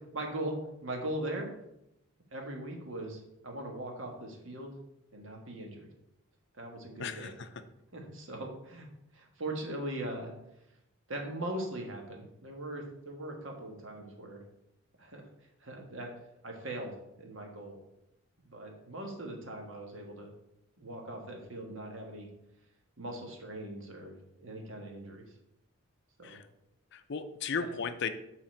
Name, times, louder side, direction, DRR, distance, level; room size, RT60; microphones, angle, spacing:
voice 1, 0.1-1.5 2.3-4.8 5.1-5.9 6.6-7.3 7.9-8.9 9.1-10.3 11.1-14.4 15.0-15.2 15.6-16.1 16.4-17.8 18.4-20.3 20.8-22.3 23.0-25.3 26.2-26.4 27.6-27.7, right 1 dB, 65° right, 2 dB, 1.5 m, -40 dB
voice 2, 7.0-7.5 26.2-26.5 26.9-28.1, left 5 dB, 55° left, 10 dB, 0.5 m, -35 dB
7.5 x 4.1 x 4.5 m, 0.83 s
head